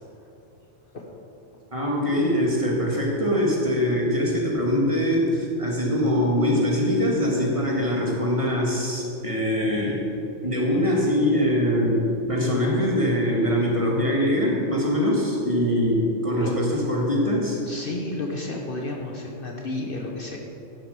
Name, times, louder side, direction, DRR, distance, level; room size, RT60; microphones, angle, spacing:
voice 1, 1.7-10.0 10.4-17.6, equal, 25° right, -3 dB, 2.2 m, -23 dB
voice 2, 17.7-20.4, left 2 dB, 50° left, 1 dB, 1.2 m, -32 dB
10.5 x 7.8 x 6.8 m, 2.8 s
omnidirectional pair, 1.3 m